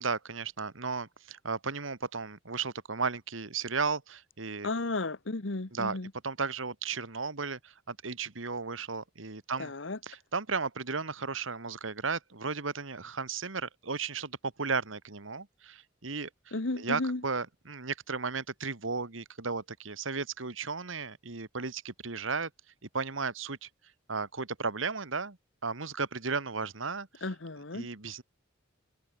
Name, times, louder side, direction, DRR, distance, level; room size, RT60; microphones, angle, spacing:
voice 1, 0.0-4.7 5.7-6.0 6.2-9.7 10.0-22.5 22.9-23.7 24.1-25.4 25.6-27.3 27.7-28.2, right 4 dB, 75° right, 1.8 m, -35 dB
voice 2, 4.6-6.1 9.6-10.0 16.5-17.2 27.2-27.9, left 2 dB, 65° left, 1.3 m, -33 dB
head